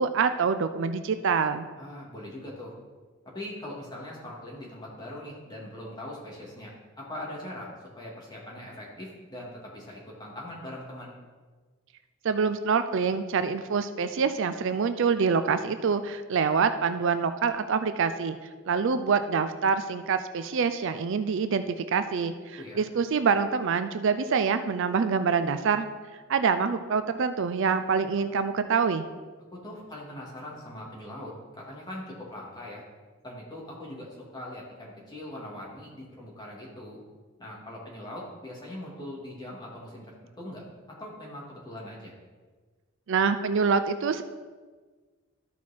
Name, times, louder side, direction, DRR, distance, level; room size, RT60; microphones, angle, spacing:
voice 1, 0.0-1.7 12.2-18.4 18.7-25.9 26.3-29.0 43.1-44.2, right 5 dB, 60° right, 10 dB, 0.4 m, -26 dB
voice 2, 1.8-2.7 3.3-6.7 7.0-7.7 8.0-11.1 22.6-22.8 29.5-32.8 33.2-37.0 37.4-40.1 40.4-40.6 41.0-42.1, left 1 dB, 20° left, -4 dB, 2.1 m, -41 dB
13.5 x 4.6 x 4.3 m, 1.4 s
head